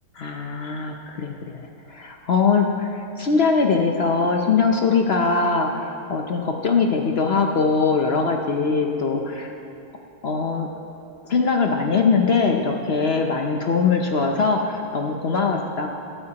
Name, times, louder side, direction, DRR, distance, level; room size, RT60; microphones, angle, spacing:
voice 1, 0.2-1.6 1.9-9.5 10.2-10.7 11.3-15.9, left 4 dB, 65° left, 2 dB, 0.6 m, -21 dB
23.0 x 8.9 x 2.9 m, 2.6 s
omnidirectional pair, 1.9 m